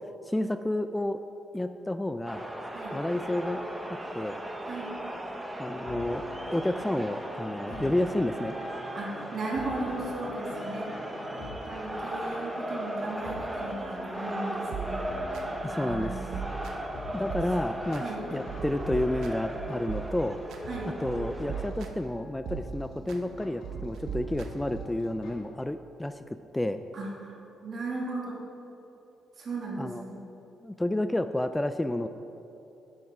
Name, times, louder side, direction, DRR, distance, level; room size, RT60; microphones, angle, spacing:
voice 1, 0.3-1.3 1.5-2.4 2.9-3.6 4.1-4.4 5.6-6.2 6.5-8.5 15.6-16.3 17.1-18.0 18.3-20.4 21.0-26.8 29.8-30.0 30.6-32.1, left 1 dB, 10° left, 10 dB, 0.3 m, -30 dB
sound 1, 2.3-21.7, right 1 dB, 15° right, 1.0 m, -37 dB
voice 2, 4.6-5.0 7.6-7.9 8.9-10.9 11.3-15.1 15.6-16.6 18.0-18.3 20.7-20.9 26.9-28.4 29.4-30.2, right 2 dB, 50° right, -2 dB, 2.4 m, -37 dB
sound 2, 5.8-25.3, left 3 dB, 80° left, 2.2 m, -47 dB
sound 3, 14.7-15.4 15.9-17.0 17.3-18.0 18.5-20.6 21.0-22.1 22.5-23.2 23.6-25.0, right 7 dB, 75° right, 0.8 m, -39 dB
10.5 x 8.0 x 4.8 m, 3.0 s
cardioid pair, 90°, 0 cm